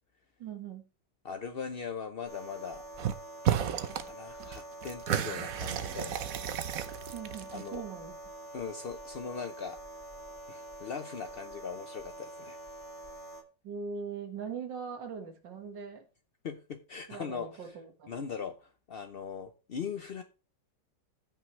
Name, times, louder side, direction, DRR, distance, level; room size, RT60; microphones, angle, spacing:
voice 1, 0.4-0.9 7.1-8.2 13.6-16.1 17.1-18.1, right 6 dB, 75° right, 2.3 m, -41 dB
voice 2, 1.2-2.8 3.5-6.3 7.5-7.8 8.5-9.8 10.5-12.6 16.4-17.7 18.1-20.2, left 6 dB, 60° left, 0.6 m, -40 dB
sound 1, 2.2-13.4, right 1 dB, 30° left, 1.7 m, -46 dB
sound 2, 3.0-3.2 3.4-4.1 4.4-7.8, right 10 dB, 60° right, 1.1 m, -32 dB
14.5 x 6.0 x 3.2 m
omnidirectional pair, 2.0 m